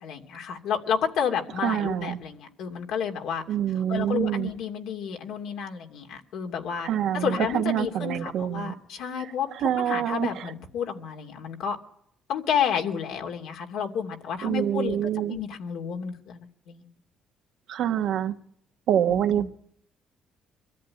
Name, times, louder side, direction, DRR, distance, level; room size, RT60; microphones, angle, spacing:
voice 1, 0.0-3.4 3.7-11.8 12.3-15.0 15.3-16.9 19.1-19.5, left 7 dB, 80° left, 2.7 m, -31 dB
voice 2, 1.6-2.2 3.5-4.5 6.8-8.8 9.6-10.4 14.4-15.4 17.7-18.3 18.9-19.5, right 10 dB, 75° right, 1.3 m, -26 dB
23.5 x 13.5 x 9.8 m
cardioid pair, 95°, 0 cm